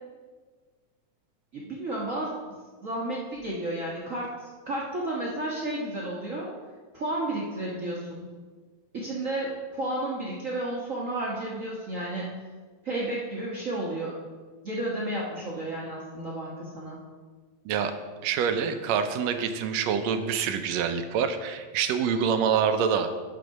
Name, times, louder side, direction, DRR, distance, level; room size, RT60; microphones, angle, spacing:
voice 1, 1.5-2.5 2.8-6.5 6.9-8.3 8.9-12.3 12.8-14.2 14.6-17.0, right 1 dB, 55° right, -5 dB, 0.9 m, -32 dB
voice 2, 18.2-23.1, right 7 dB, 75° right, 8 dB, 1.7 m, -26 dB
11.0 x 3.9 x 5.3 m, 1.4 s
omnidirectional pair, 3.3 m